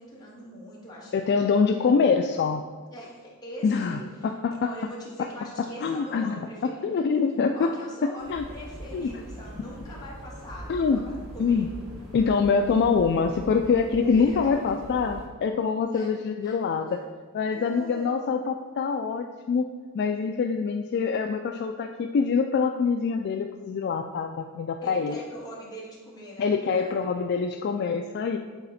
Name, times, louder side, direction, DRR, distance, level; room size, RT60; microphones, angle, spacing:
voice 1, 0.0-1.1 1.4-2.0 2.9-4.3 4.6-7.0 7.5-11.7 12.2-12.4 14.0-14.4 15.9-16.1 16.4-16.6 16.9-17.0 17.4-18.3 24.8-26.9, equal, 20° left, -5 dB, 1.7 m, -43 dB
voice 2, 1.1-2.6 3.6-4.7 5.8-7.7 8.0-8.4 8.9-9.1 10.7-11.0 11.4-11.7 12.1-17.0 17.3-19.7 19.9-25.2 26.4-28.4, left 5 dB, 50° left, 5 dB, 0.3 m, -25 dB
sound 1, 8.2-15.3, equal, 80° right, 1.4 m, -42 dB
8.2 x 4.2 x 4.1 m, 1.5 s
head